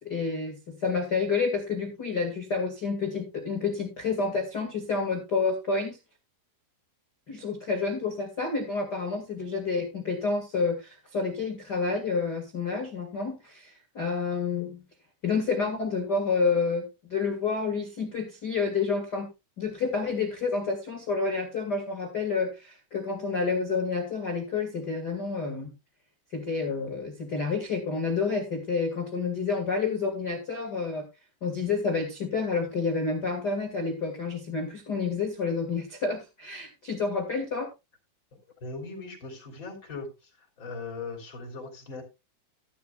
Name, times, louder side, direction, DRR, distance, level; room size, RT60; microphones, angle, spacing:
voice 1, 0.0-6.0 7.3-14.8 15.2-19.3 19.6-25.7 26.3-31.1 31.4-37.7, left 4 dB, 85° left, 2 dB, 0.9 m, -29 dB
voice 2, 38.6-40.1 40.6-42.0, left 3 dB, 30° left, 1 dB, 3.6 m, -39 dB
14.5 x 11.0 x 2.3 m, 0.25 s
omnidirectional pair, 5.3 m